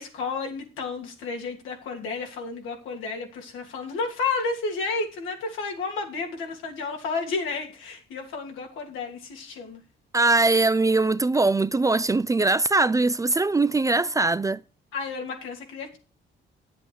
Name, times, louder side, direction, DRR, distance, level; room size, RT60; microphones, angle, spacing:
voice 1, 0.0-9.8 14.9-16.0, left 4 dB, 85° left, 2.8 m, -31 dB
voice 2, 10.1-14.6, right 3 dB, 15° right, 0.4 m, -21 dB
9.7 x 7.7 x 4.7 m
cardioid pair, 90°, 20 cm